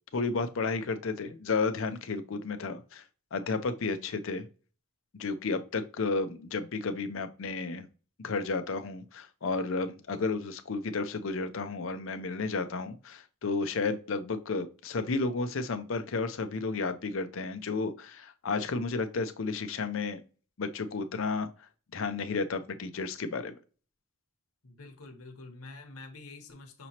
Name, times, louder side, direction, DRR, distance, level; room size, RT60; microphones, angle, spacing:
voice 1, 0.1-3.0 3.3-4.5 5.1-7.9 8.2-20.2 20.6-21.5 21.9-23.6, left 4 dB, 60° left, 0.5 m, -32 dB
voice 2, 24.6-26.9, left 3 dB, 80° left, 1.0 m, -47 dB
6.0 x 2.9 x 2.8 m
head